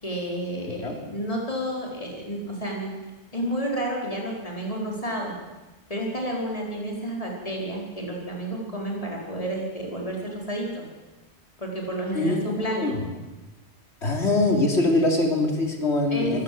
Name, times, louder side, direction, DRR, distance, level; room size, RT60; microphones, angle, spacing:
voice 1, 0.0-2.9 3.3-5.3 5.9-10.9 11.6-13.0 16.1-16.4, right 1 dB, 30° left, -2 dB, 5.1 m, -30 dB
voice 2, 14.0-16.4, left 2 dB, 70° left, 2 dB, 3.6 m, -23 dB
23.5 x 15.5 x 7.9 m, 1.1 s
omnidirectional pair, 1.2 m